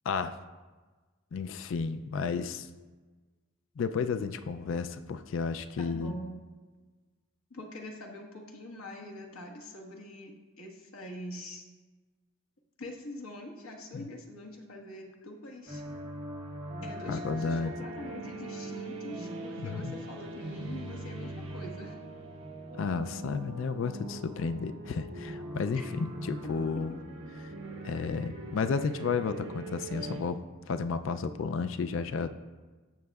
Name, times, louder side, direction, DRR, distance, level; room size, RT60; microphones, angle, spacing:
voice 1, 0.1-0.4 1.3-2.7 3.8-6.2 13.9-14.1 17.1-17.7 19.6-19.9 22.8-27.0 27.8-30.4 30.7-32.3, left 5 dB, 60° left, 10 dB, 0.3 m, -32 dB
voice 2, 5.8-6.4 7.5-11.6 12.8-15.8 16.8-22.0 25.8-25.9 26.9-27.0, left 1 dB, 85° left, 1 dB, 1.3 m, -44 dB
sound 1, 15.7-30.2, right 1 dB, 65° right, 1.2 m, -41 dB
14.0 x 6.3 x 2.3 m, 1.3 s
head